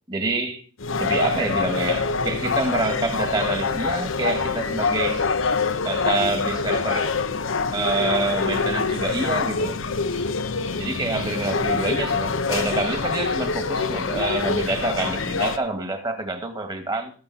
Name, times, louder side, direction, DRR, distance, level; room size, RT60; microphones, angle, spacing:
voice 1, 0.1-0.6 1.0-5.3 5.8-7.2 7.7-9.8 10.8-17.1, right 2 dB, 25° right, 1.8 m, -27 dB
sound 1, 0.8-15.6, left 4 dB, 80° left, 0.9 m, -25 dB
18.0 x 7.0 x 4.2 m
head